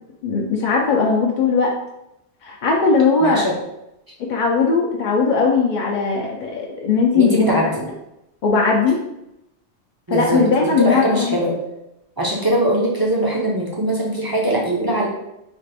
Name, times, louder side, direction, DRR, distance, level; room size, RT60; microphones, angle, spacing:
voice 1, 0.2-1.7 2.4-3.5 4.2-7.6 8.4-9.0 10.1-11.4, left 4 dB, 60° left, -1 dB, 0.5 m, -18 dB
voice 2, 3.2-3.5 7.1-7.8 10.1-11.5 12.2-15.1, right 1 dB, 25° right, -3 dB, 0.5 m, -21 dB
4.0 x 2.4 x 3.3 m, 0.86 s
omnidirectional pair, 1.2 m